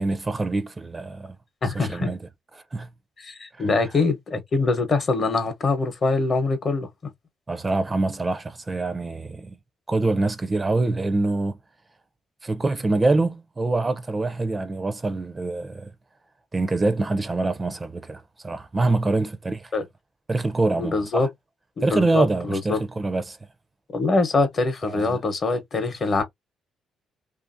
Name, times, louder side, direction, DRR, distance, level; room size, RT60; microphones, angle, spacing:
voice 1, 0.0-1.4 1.7-2.2 2.7-2.9 3.6-3.7 7.5-9.6 9.9-11.6 12.4-15.9 16.5-19.7 20.3-21.3 21.8-23.4 24.8-25.2, right 2 dB, 25° right, 0.4 m, -25 dB
voice 2, 1.6-2.1 3.2-7.1 19.7-19.8 20.8-21.3 21.8-22.8 23.9-26.2, left 3 dB, 45° left, 0.8 m, -24 dB
2.8 x 2.5 x 2.6 m
cardioid pair, 90°, 0 cm